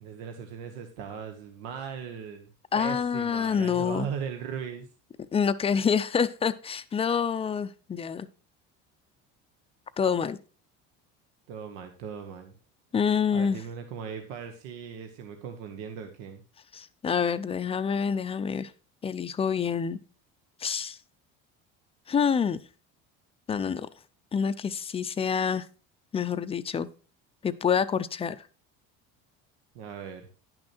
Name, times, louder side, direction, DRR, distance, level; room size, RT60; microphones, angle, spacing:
voice 1, 0.0-4.9 11.5-12.5 13.3-16.4 29.7-30.3, right 7 dB, 85° right, 5 dB, 1.3 m, -38 dB
voice 2, 2.7-4.1 5.3-8.3 10.0-10.4 12.9-13.6 16.7-18.7 19.0-20.0 20.6-21.0 22.1-22.6 23.5-23.9 24.3-25.7 26.1-26.9 27.4-28.4, left 7 dB, 20° left, 12 dB, 0.5 m, -27 dB
10.5 x 6.2 x 4.4 m, 0.36 s
cardioid pair, 140°, 30 cm